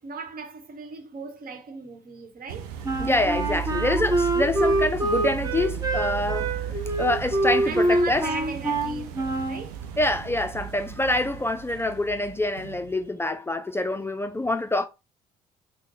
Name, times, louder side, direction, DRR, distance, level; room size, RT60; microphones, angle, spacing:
voice 1, 0.0-2.7 7.6-9.8, right 4 dB, 50° right, 1.2 m, -38 dB
sound 1, 2.5-13.0, right 9 dB, 80° right, 0.6 m, -35 dB
Wind instrument woodwind instrument, 2.8-9.7, right 2 dB, 20° right, 1.0 m, -25 dB
voice 2, 3.0-6.6 7.0-8.3 10.0-14.9, left 2 dB, 10° left, 0.5 m, -26 dB
3.6 x 2.2 x 4.0 m
hypercardioid pair, 55°, 19 cm